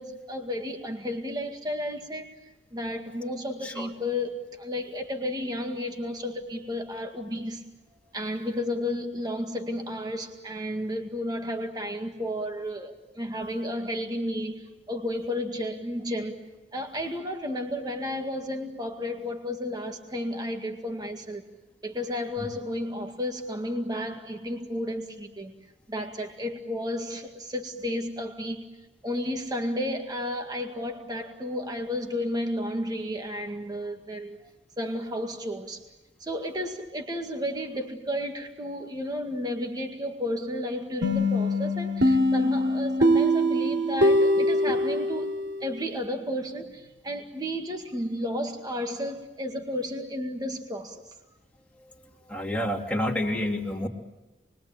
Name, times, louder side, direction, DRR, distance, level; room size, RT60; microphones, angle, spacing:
voice 1, 0.0-2.4 2.7-7.6 8.1-16.4 16.7-21.4 21.8-25.5 25.9-28.7 29.0-34.4 34.8-35.8 36.2-45.3 45.6-51.1, left 1 dB, 20° right, 4 dB, 2.0 m, -32 dB
sound 1, 41.0-45.7, equal, 70° right, 3.4 m, -23 dB
voice 2, 52.3-53.9, left 1 dB, 5° left, -1 dB, 2.9 m, -28 dB
28.5 x 22.0 x 8.9 m, 1.1 s
head